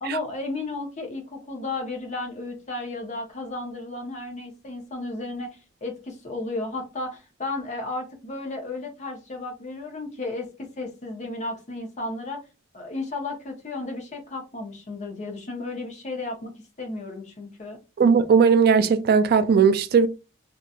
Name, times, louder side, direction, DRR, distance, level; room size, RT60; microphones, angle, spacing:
voice 1, 0.0-12.4 12.7-17.8, left 2 dB, 40° left, 0.8 m, -33 dB
voice 2, 18.0-20.1, right 6 dB, 55° right, 0.3 m, -18 dB
2.7 x 2.3 x 2.3 m
head